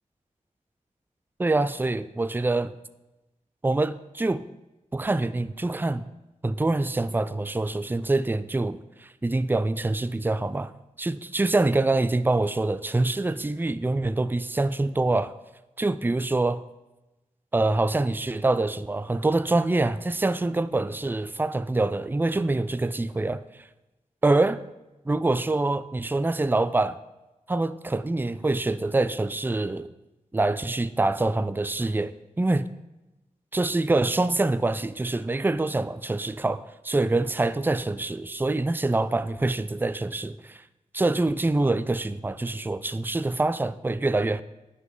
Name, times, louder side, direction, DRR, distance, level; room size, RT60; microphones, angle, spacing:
voice 1, 1.4-2.8 3.6-4.4 4.9-6.1 6.4-10.7 11.0-15.3 15.8-16.6 17.5-23.4 24.2-24.6 25.1-27.0 27.5-29.9 30.3-32.7 33.5-40.6 40.9-44.4, right 2 dB, 15° right, 0.4 m, -25 dB
10.0 x 6.1 x 3.8 m
cardioid pair, 50°, 14 cm